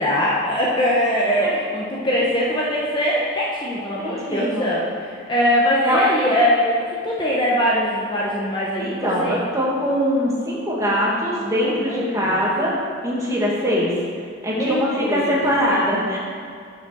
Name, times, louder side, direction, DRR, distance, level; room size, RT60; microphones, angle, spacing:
voice 1, 0.0-9.4 11.5-12.4 14.5-15.4, equal, 20° left, -5 dB, 0.9 m, -22 dB
voice 2, 4.0-4.7 5.8-6.0 8.8-12.8 13.0-13.9 14.4-16.2, equal, 15° right, -6 dB, 1.8 m, -22 dB
7.2 x 6.2 x 6.1 m, 2.3 s
head